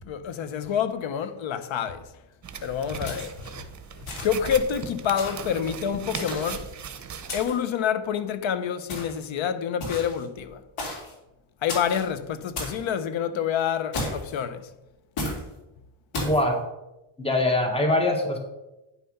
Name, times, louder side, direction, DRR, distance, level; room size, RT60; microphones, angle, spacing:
voice 1, 0.1-2.0 2.6-3.5 4.2-6.6 7.3-10.6 11.6-14.7, left 8 dB, 65° left, 1.0 m, -27 dB
sound 1, 2.4-7.4, right 6 dB, 35° right, 1.1 m, -38 dB
sound 2, 3.1-3.5 4.1-4.5 5.2-5.5 6.1-6.7 7.3-7.7 8.9-9.3 9.8-10.2 10.8-11.1 11.7-12.1 12.6-12.8 13.9-14.4 15.2-15.4 16.1-16.4, left 2 dB, 80° left, 3.3 m, -33 dB
voice 2, 16.1-16.6 17.2-18.4, left 1 dB, 10° left, 1.6 m, -23 dB
10.0 x 5.8 x 5.5 m
cardioid pair, 100°, 50 cm